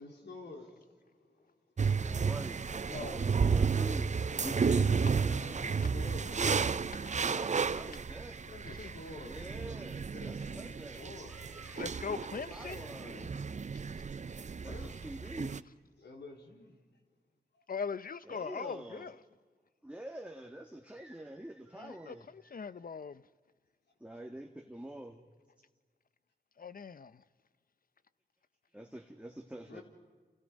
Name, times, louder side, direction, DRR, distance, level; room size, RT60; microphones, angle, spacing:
voice 1, 0.0-1.5 5.1-6.6 8.5-9.4 9.8-11.3 12.9-13.4 13.9-14.0 14.6-14.9 15.2-15.3 16.0-16.8 24.1-24.2 29.7-29.8, left 2 dB, 85° left, 4.1 m, -50 dB
sound 1, 1.8-15.6, right 5 dB, 45° right, 0.6 m, -33 dB
voice 2, 1.9-2.6 3.0-4.1 4.4-5.3 7.3-8.4 9.2-11.8 12.1-13.2 14.7-14.8 15.0-15.7 18.3-19.1 19.8-22.5 24.0-25.3 28.7-29.8, right 1 dB, 5° right, 1.9 m, -46 dB
voice 3, 2.7-3.2 4.5-4.9 6.9-7.1 8.7-9.5 11.7-12.9 17.7-19.2 21.7-23.2 26.6-27.2, left 6 dB, 55° left, 0.7 m, -42 dB
29.5 x 28.0 x 5.3 m
cardioid pair, 60°, 17 cm